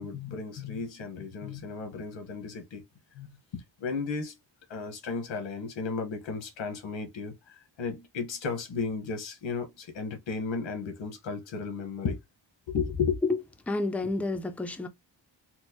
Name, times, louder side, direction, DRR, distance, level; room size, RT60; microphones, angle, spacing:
voice 1, 0.0-2.8 3.1-4.3 4.7-12.2 12.7-13.2, left 5 dB, 85° left, 1.3 m, -34 dB
voice 2, 13.7-14.9, left 2 dB, 5° left, 0.3 m, -29 dB
4.4 x 2.0 x 2.9 m
wide cardioid pair, 155°, 44 cm